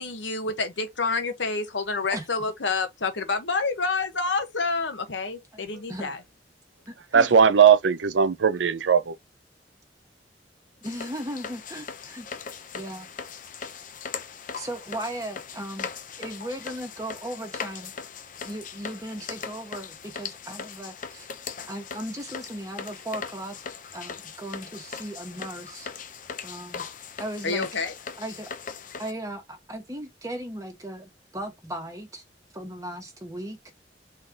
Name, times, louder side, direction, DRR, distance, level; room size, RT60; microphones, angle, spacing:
voice 1, 0.0-6.2 7.2-7.3 27.4-27.9, left 4 dB, 85° left, 1.2 m, -28 dB
voice 2, 5.5-6.1 6.9-7.3 10.8-13.1 14.6-15.9 16.2-17.9 18.4-21.3 21.7-23.6 23.9-25.9 26.4-26.8 27.2-27.7 28.2-28.5 28.9-32.2 32.5-33.6, right 1 dB, 20° right, 1.5 m, -37 dB
voice 3, 7.1-9.2, right 7 dB, 80° right, 0.5 m, -18 dB
sound 1, 10.8-29.1, left 6 dB, 45° left, 0.7 m, -39 dB
4.1 x 3.2 x 3.8 m
head